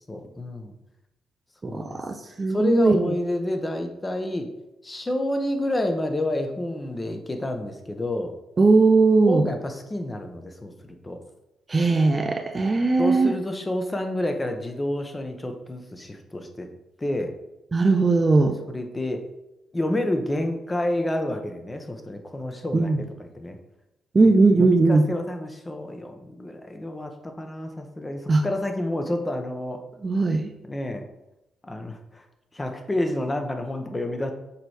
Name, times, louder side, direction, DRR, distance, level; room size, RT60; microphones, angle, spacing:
voice 1, 0.1-0.7 1.7-2.0 2.5-4.5 4.8-8.3 9.3-11.2 13.0-16.7 17.0-17.3 18.7-19.2 19.7-23.6 24.2-29.8 30.6-31.1 31.6-32.2 32.5-34.3, left 1 dB, 20° left, 5 dB, 0.8 m, -29 dB
voice 2, 1.6-3.1 8.6-9.5 11.7-13.4 17.7-18.6 22.7-23.0 24.1-25.1 28.3-28.4 30.0-30.5, right 3 dB, 25° right, 7 dB, 0.4 m, -19 dB
6.6 x 3.1 x 4.8 m, 0.91 s
cardioid pair, 90°, 0 cm